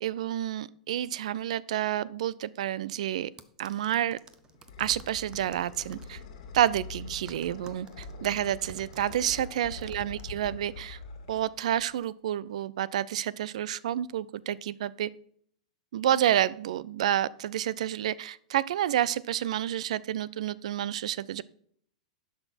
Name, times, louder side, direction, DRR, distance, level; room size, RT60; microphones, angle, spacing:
voice 1, 0.0-3.3 3.6-4.2 4.8-6.2 6.5-11.0 11.3-15.1 15.9-21.4, right 11 dB, 65° right, 21 dB, 0.4 m, -29 dB
sound 1, 3.4-6.1 7.3-10.2, right 5 dB, 20° right, 0.7 m, -53 dB
sound 2, 4.1-12.0, left 3 dB, 70° left, 1.9 m, -44 dB
11.5 x 5.9 x 4.2 m, 0.62 s
hypercardioid pair, 105°, 4 cm